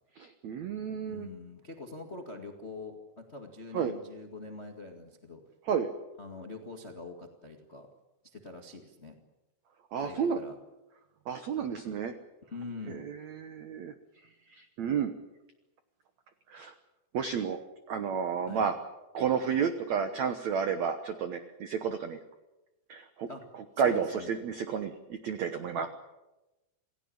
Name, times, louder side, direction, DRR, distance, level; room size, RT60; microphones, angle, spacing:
voice 1, 0.2-1.3 3.7-3.9 5.7-5.9 9.9-10.4 11.3-12.1 12.9-13.9 14.5-15.1 16.5-16.7 17.1-17.6 17.9-18.8 19.1-22.2 22.9-23.3 23.8-25.9, right 7 dB, 75° right, 9 dB, 1.6 m, -31 dB
voice 2, 1.0-5.4 6.2-7.9 8.2-9.1 10.0-10.5 12.4-13.1 18.5-18.7 23.3-23.4 23.8-24.3 25.8-25.9, left 3 dB, 50° left, 4 dB, 0.7 m, -44 dB
27.5 x 17.0 x 8.7 m, 1.0 s
omnidirectional pair, 4.9 m